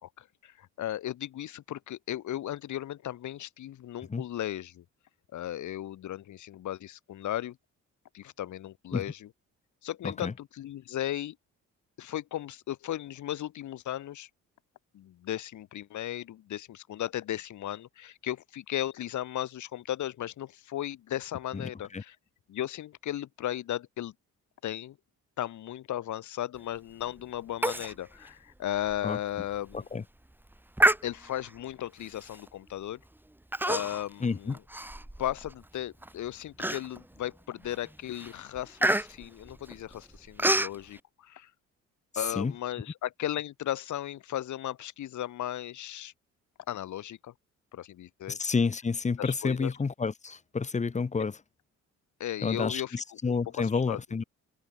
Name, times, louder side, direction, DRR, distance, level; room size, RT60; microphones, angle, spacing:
voice 1, 0.0-4.8 5.3-7.6 8.1-9.3 9.8-11.4 12.0-14.3 14.9-22.1 22.5-24.1 24.6-25.0 25.4-29.9 31.0-33.0 33.7-34.6 35.2-41.5 42.1-46.1 46.7-47.3 47.7-48.4 49.2-49.7 52.2-53.0 53.3-54.0, left 12 dB, 75° left, 3.1 m, -36 dB
voice 2, 10.0-10.3 21.5-22.0 29.0-29.2 29.7-30.0 34.2-34.6 42.1-42.5 48.3-51.4 52.4-54.2, left 4 dB, 25° left, 1.1 m, -30 dB
Human voice, 27.6-27.9 28.3-28.4 28.9-29.0 29.5-29.8 30.8-31.5 32.3-32.5 33.5-34.1 34.5-35.5 36.0-36.1 36.6-37.2 37.6-37.9 38.1-40.8, right 1 dB, 5° right, 2.3 m, -28 dB
cardioid pair, 90°, 30 cm